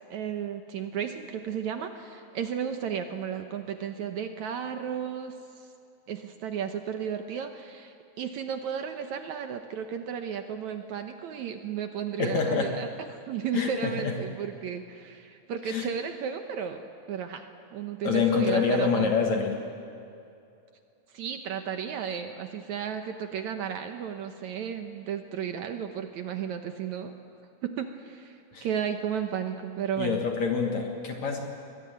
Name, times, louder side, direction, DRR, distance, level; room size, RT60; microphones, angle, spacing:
voice 1, 0.1-5.7 6.1-12.9 13.3-19.1 21.1-27.1 27.6-30.2, right 8 dB, 70° right, 7 dB, 1.9 m, -34 dB
voice 2, 12.2-12.7 13.5-14.1 15.7-15.9 18.0-19.6 28.5-28.7 30.0-31.4, left 5 dB, 55° left, 3 dB, 2.5 m, -26 dB
22.5 x 21.0 x 9.4 m, 2.6 s
omnidirectional pair, 4.3 m